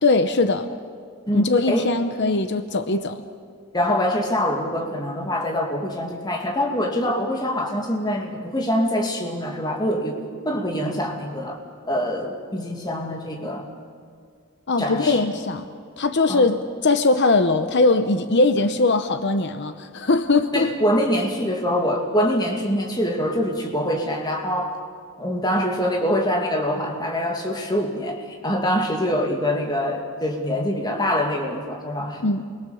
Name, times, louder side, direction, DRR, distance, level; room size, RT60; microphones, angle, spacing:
voice 1, 0.0-0.7 1.3-3.2 14.7-15.7 16.0-20.7 32.2-32.5, left 3 dB, 50° left, 9 dB, 0.9 m, -20 dB
voice 2, 1.3-2.0 3.7-10.2 10.5-11.6 11.9-13.7 14.8-15.3 16.3-16.5 20.5-24.8 25.2-32.2, equal, 20° left, 1 dB, 2.3 m, -24 dB
28.5 x 22.5 x 7.1 m, 2.2 s
head